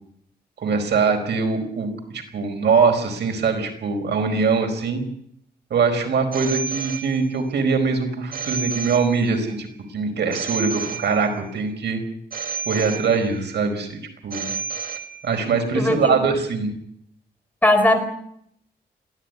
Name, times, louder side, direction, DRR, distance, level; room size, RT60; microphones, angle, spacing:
voice 1, 0.6-5.0 5.7-12.0 12.7-14.5 15.2-16.7, right 5 dB, 85° right, 5 dB, 4.8 m, -22 dB
Telephone, 6.3-7.6 8.3-9.6 10.3-11.6 12.3-13.6 14.3-15.6, right 6 dB, 55° right, 2.2 m, -32 dB
voice 2, 15.7-16.2 17.6-18.0, left 1 dB, 10° left, 6 dB, 4.3 m, -18 dB
22.0 x 16.0 x 9.7 m, 0.72 s
wide cardioid pair, 115°, 17 cm